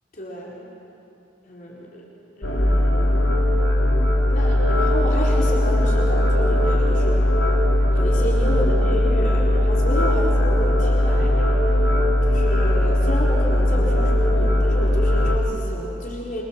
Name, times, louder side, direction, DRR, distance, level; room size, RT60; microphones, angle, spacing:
voice 1, 0.1-0.6 1.4-2.1 2.4-3.2 4.3-7.3 7.9-11.6 12.2-16.4, equal, 45° left, -4 dB, 4.6 m, -31 dB
sound 1, 2.4-15.4, left 1 dB, 85° left, 3.3 m, -19 dB
27.5 x 25.5 x 7.6 m, 2.8 s
head